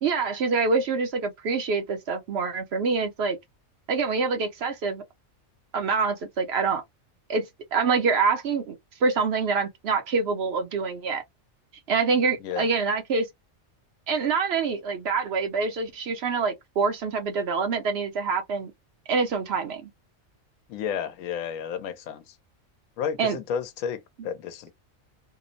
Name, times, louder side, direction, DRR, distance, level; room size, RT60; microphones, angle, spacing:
voice 1, 0.0-3.4 3.9-5.0 5.7-6.8 7.3-8.8 9.0-11.2 11.9-13.3 14.1-18.7 19.1-19.9 23.2-23.4, right 4 dB, 60° right, 0.8 m, -26 dB
voice 2, 20.7-22.3 23.0-24.7, left 7 dB, 80° left, 1.0 m, -32 dB
2.8 x 2.0 x 2.5 m
omnidirectional pair, 1.4 m